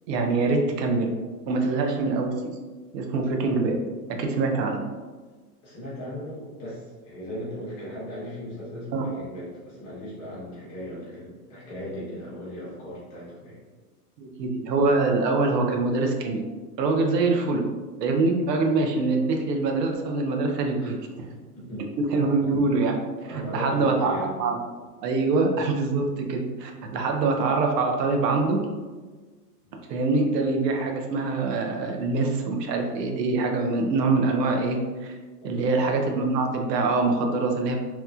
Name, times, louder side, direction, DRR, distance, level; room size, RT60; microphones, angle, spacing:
voice 1, 0.1-1.1 1.5-2.4 2.9-3.8 4.2-4.8 8.9-9.0 14.2-16.4 16.8-17.7 18.0-21.3 22.0-23.0 23.3-24.6 25.0-28.6 29.9-35.2 35.4-37.8, right 3 dB, 80° right, 3 dB, 0.6 m, -24 dB
voice 2, 5.6-13.6 20.8-20.9 21.5-21.9 23.2-24.3 35.4-35.8, equal, 25° left, -8 dB, 0.8 m, -37 dB
2.9 x 2.2 x 2.3 m, 1.3 s
supercardioid pair, 165°, 48 cm